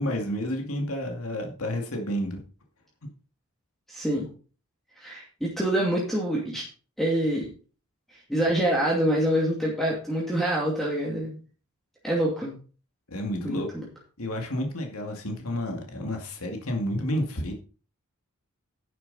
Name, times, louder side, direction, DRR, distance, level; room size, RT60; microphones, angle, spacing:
voice 1, 0.0-2.4 13.1-13.7 14.2-17.6, equal, 75° left, 3 dB, 2.3 m, -30 dB
voice 2, 3.9-4.3 5.0-6.6 7.0-7.5 8.3-11.4 12.0-12.5 13.4-13.9, right 1 dB, ahead, -4 dB, 2.5 m, -26 dB
11.0 x 9.2 x 4.1 m, 0.37 s
head